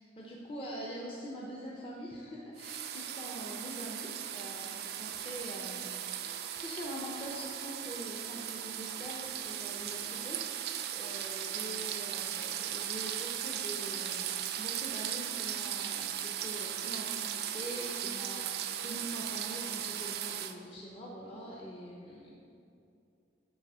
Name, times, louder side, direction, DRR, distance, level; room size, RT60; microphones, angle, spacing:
voice 1, 0.0-22.4, equal, 30° left, -4 dB, 0.8 m, -44 dB
sound 1, 2.6-20.5, right 10 dB, 60° right, 0.4 m, -37 dB
10.5 x 3.7 x 6.2 m, 2.6 s
head